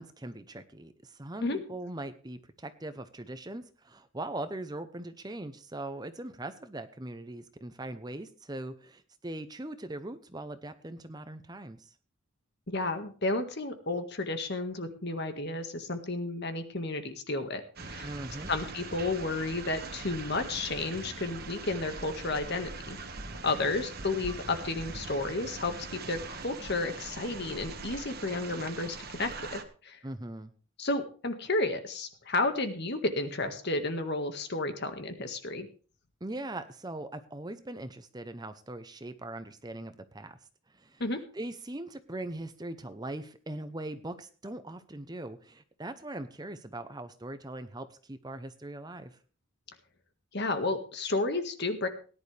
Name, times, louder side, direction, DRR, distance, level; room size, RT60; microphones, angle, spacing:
voice 1, 0.0-11.9 18.0-18.5 23.5-23.7 30.0-30.5 36.2-40.4 40.7-41.0 41.3-49.2, right 1 dB, 20° right, 10 dB, 0.8 m, -41 dB
voice 2, 12.7-18.1 18.5-23.0 23.4-30.0 30.8-35.7 41.0-41.2 50.3-51.9, left 2 dB, 50° left, 7 dB, 1.7 m, -32 dB
sound 1, 17.8-29.6, right 3 dB, 45° right, 1.5 m, -42 dB
18.0 x 11.0 x 3.4 m, 0.39 s
head